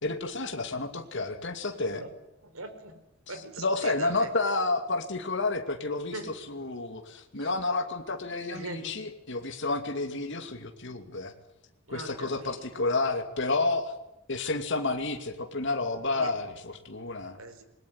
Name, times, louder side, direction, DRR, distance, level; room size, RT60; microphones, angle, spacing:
voice 1, 0.0-2.0 3.6-11.3 11.9-13.9 14.3-17.4, left 3 dB, 60° left, 4 dB, 2.6 m, -30 dB
voice 2, 2.4-3.0 3.3-4.3 6.1-6.3 7.4-7.5 8.5-9.0 11.9-12.7 16.2-16.3 17.4-17.6, right 2 dB, 90° right, 9 dB, 4.9 m, -41 dB
27.0 x 21.5 x 9.7 m, 0.85 s
head